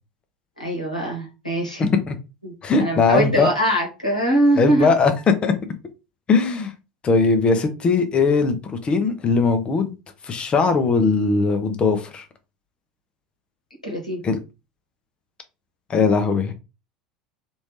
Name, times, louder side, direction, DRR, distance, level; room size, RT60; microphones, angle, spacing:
voice 1, 0.6-1.9 2.4-4.9 13.8-14.2, right 1 dB, 90° left, -1 dB, 1.1 m, -22 dB
voice 2, 1.8-2.1 2.6-3.5 4.6-5.1 5.4-5.5 6.3-6.7 7.0-8.6 8.8-9.9 10.2-12.2 14.2-14.4 15.9-16.5, left 4 dB, 30° left, 7 dB, 0.7 m, -19 dB
3.1 x 2.6 x 3.2 m, 0.28 s
figure-of-eight pair, 75°, 4 cm